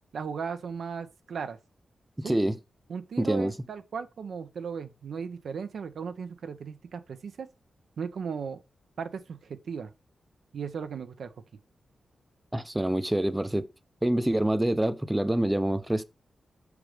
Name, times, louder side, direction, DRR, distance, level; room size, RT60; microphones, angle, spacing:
voice 1, 0.1-1.6 2.2-2.4 2.9-7.5 8.0-8.6 9.0-9.9 10.5-11.3, right 6 dB, 75° right, 0.9 m, -36 dB
voice 2, 2.2-2.6 3.2-3.5 12.5-13.7 14.0-16.0, right 1 dB, 10° right, 0.7 m, -26 dB
6.4 x 4.8 x 5.0 m
cardioid pair, 85°, 0 cm